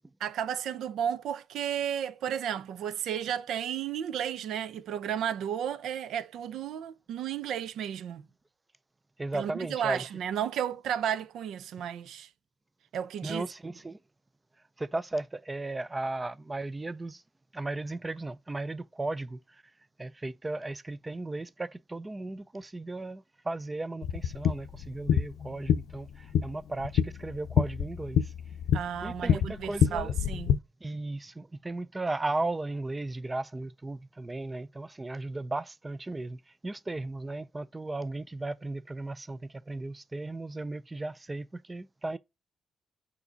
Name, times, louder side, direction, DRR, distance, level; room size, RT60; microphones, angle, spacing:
voice 1, 0.2-8.2 9.3-12.3 12.9-13.5 28.7-30.6, right 9 dB, 75° right, 0.6 m, -33 dB
voice 2, 9.2-10.1 13.2-14.0 14.8-17.2 17.5-19.6 20.0-28.3 29.0-30.2 30.8-42.2, right 2 dB, 15° right, 0.4 m, -36 dB
sound 1, 24.0-30.6, left 8 dB, 85° left, 0.6 m, -28 dB
5.4 x 4.7 x 3.9 m
cardioid pair, 170°, 0 cm